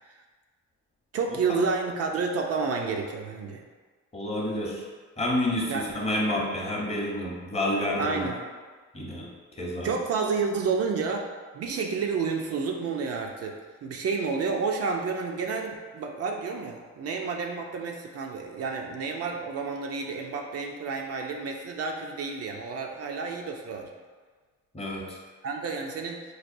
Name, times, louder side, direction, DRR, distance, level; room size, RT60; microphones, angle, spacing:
voice 1, 1.1-3.6 5.7-5.9 8.0-8.4 9.8-11.3 11.5-13.6 13.8-23.9 25.4-26.2, right 5 dB, 55° right, 1 dB, 0.4 m, -30 dB
voice 2, 4.1-4.8 5.2-8.3 8.9-9.9 24.7-25.2, left 1 dB, 20° left, -3 dB, 0.8 m, -29 dB
4.7 x 2.2 x 2.5 m, 1.5 s
cardioid pair, 90°, 30 cm